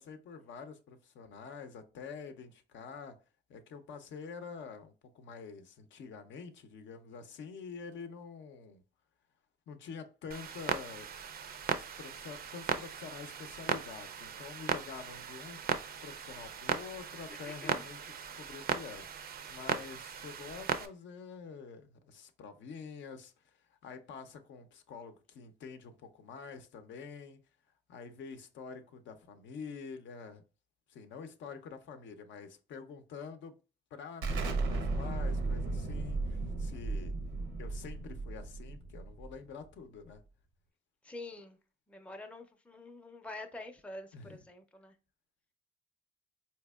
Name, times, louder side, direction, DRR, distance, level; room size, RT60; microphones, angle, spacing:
voice 1, 0.0-3.2 3.5-8.8 9.7-11.1 11.8-15.6 16.0-19.0 19.5-27.4 27.9-30.4 30.9-33.5 33.9-37.1 37.6-40.2 44.1-44.4, left 5 dB, 70° left, 0.5 m, -47 dB
Clock, 10.3-20.9, right 7 dB, 50° right, 0.4 m, -38 dB
voice 2, 17.3-17.9 41.0-41.6 41.9-45.0, left 2 dB, 5° left, 0.5 m, -47 dB
Explosion, 34.2-39.7, right 3 dB, 90° right, 0.7 m, -35 dB
4.2 x 2.8 x 2.2 m
cardioid pair, 90°, 20 cm